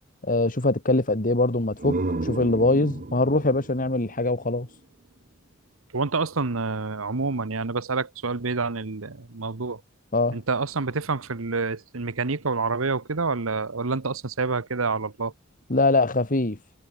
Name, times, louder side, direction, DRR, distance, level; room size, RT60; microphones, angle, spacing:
voice 1, 0.2-4.7 10.1-10.4 15.7-16.6, left 2 dB, 40° left, 2.3 m, -23 dB
sound 1, 1.5-5.2, right 2 dB, 45° right, 1.1 m, -33 dB
voice 2, 5.9-9.8 10.3-15.3, right 4 dB, 85° right, 1.2 m, -27 dB
head